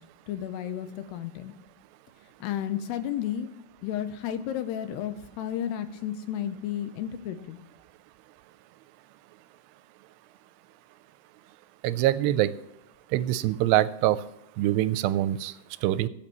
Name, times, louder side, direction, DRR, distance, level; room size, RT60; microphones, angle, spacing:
voice 1, 0.3-1.5 2.4-3.5 3.8-7.6, left 10 dB, 80° left, 9 dB, 2.8 m, -32 dB
voice 2, 11.8-12.5 13.1-14.2 14.6-15.5 15.8-16.1, right 14 dB, 85° right, 15 dB, 2.7 m, -24 dB
23.5 x 8.6 x 3.1 m, 0.87 s
omnidirectional pair, 4.9 m